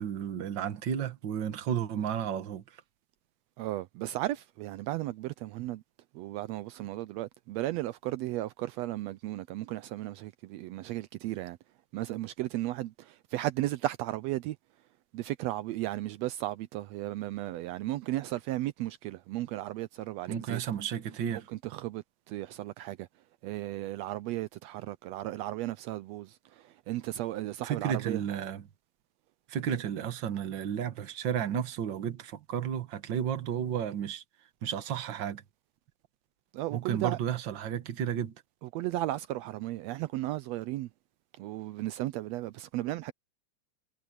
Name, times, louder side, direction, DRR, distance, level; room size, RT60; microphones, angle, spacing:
voice 1, 0.0-2.6 20.3-21.5 27.6-28.7 29.5-34.2 34.6-35.4 36.7-38.3, right 9 dB, 50° right, 1.5 m, -32 dB
voice 2, 3.6-5.8 6.1-11.6 11.9-14.6 15.1-20.6 21.3-23.1 23.4-28.2 36.5-37.2 38.7-40.9 41.4-43.1, right 16 dB, 85° right, 1.5 m, -35 dB
omnidirectional pair, 3.6 m